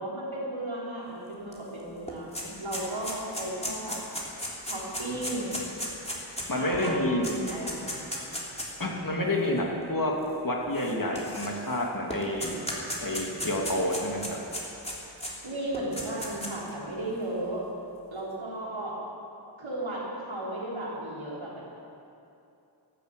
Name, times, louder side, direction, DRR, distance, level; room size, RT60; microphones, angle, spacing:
voice 1, 0.0-4.0 4.7-5.7 6.5-8.1 15.4-17.7 18.1-19.0 19.6-21.6, right 1 dB, 85° right, -5 dB, 3.8 m, -35 dB
sound 1, 1.5-1.6 1.9-8.8 9.6-9.7 10.7-11.8 12.1-15.3 15.7-16.7, equal, 15° left, 3.2 m, -35 dB
voice 2, 6.5-7.2 8.8-10.1 10.4-12.6 13.0-14.2, left 1 dB, 45° left, -1 dB, 2.7 m, -28 dB
12.5 x 11.5 x 8.3 m, 2.7 s
wide cardioid pair, 40°, 46 cm